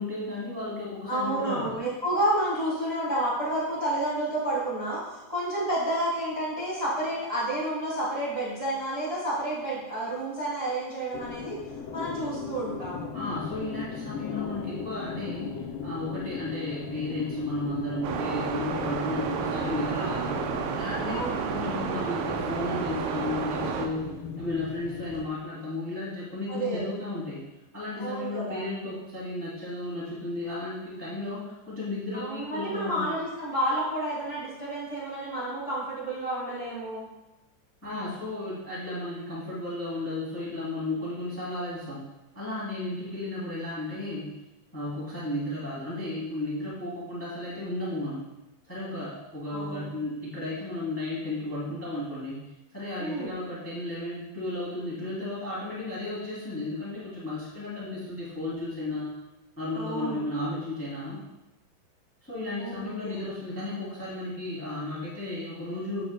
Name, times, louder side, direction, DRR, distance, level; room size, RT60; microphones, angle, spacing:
voice 1, 0.0-1.7 13.1-15.5 15.8-20.3 20.8-24.1 24.4-27.4 27.7-33.1 37.8-42.0 42.3-44.4 44.7-48.3 48.7-59.1 59.6-61.2 62.2-66.0, left 2 dB, 15° left, -8 dB, 0.4 m, -34 dB
voice 2, 1.1-11.6 11.9-13.1 21.0-21.4 26.5-26.9 28.0-28.6 32.1-37.1 49.5-49.9 53.0-53.3 59.7-60.2 62.6-63.3, right 1 dB, 25° right, -9 dB, 0.7 m, -30 dB
sound 1, 11.1-25.3, left 5 dB, 90° left, 2.2 m, -38 dB
sound 2, 18.0-23.9, right 6 dB, 80° right, 2.9 m, -31 dB
8.5 x 8.4 x 2.2 m, 0.99 s
omnidirectional pair, 5.4 m